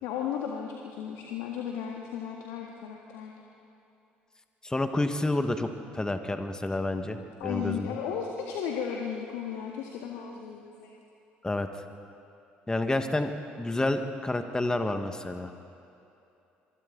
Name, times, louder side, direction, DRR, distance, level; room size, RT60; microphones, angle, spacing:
voice 1, 0.0-3.4 7.4-10.9, left 8 dB, 70° left, 0 dB, 1.9 m, -35 dB
voice 2, 4.6-7.2 7.4-8.0 11.4-11.7 12.7-13.3 13.6-15.5, left 2 dB, 15° left, 7 dB, 1.7 m, -29 dB
27.0 x 24.0 x 4.1 m, 2.8 s
hypercardioid pair, 55°, 5 cm